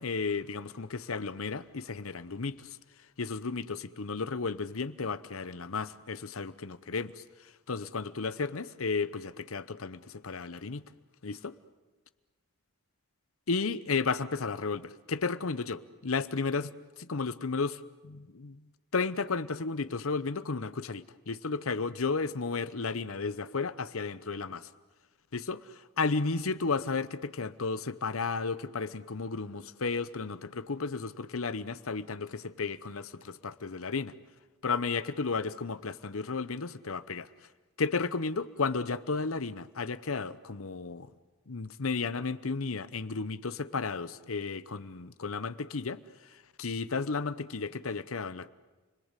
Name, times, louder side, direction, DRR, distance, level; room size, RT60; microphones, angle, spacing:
voice 1, 0.0-2.7 3.2-7.2 7.7-10.8 11.2-11.5 13.5-16.7 17.0-18.6 18.9-24.7 25.3-34.1 34.6-37.3 37.8-41.1 41.5-46.0 46.6-48.5, left 4 dB, 90° left, 15 dB, 0.9 m, -33 dB
30.0 x 21.0 x 8.3 m, 1.2 s
head